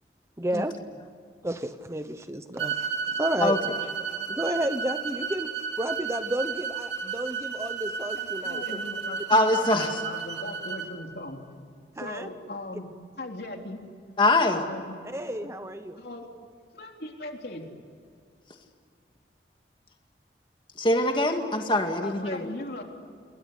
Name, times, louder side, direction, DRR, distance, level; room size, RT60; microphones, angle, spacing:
voice 1, 0.4-0.8 1.4-3.7 4.3-5.5 5.8-8.6 12.0-12.3 15.0-16.0, right 1 dB, 15° right, 9 dB, 0.9 m, -31 dB
sound 1, 2.6-10.9, right 6 dB, 75° right, 3.7 m, -33 dB
voice 2, 8.2-11.4 12.0-12.9 13.2-13.8 14.5-14.8 16.0-16.2 16.7-17.7 22.0-22.8, left 2 dB, 60° left, 2 dB, 3.6 m, -38 dB
voice 3, 9.3-10.0 14.2-14.6 20.8-22.5, left 2 dB, 30° left, 4 dB, 2.1 m, -23 dB
28.5 x 22.0 x 8.3 m, 2.2 s
head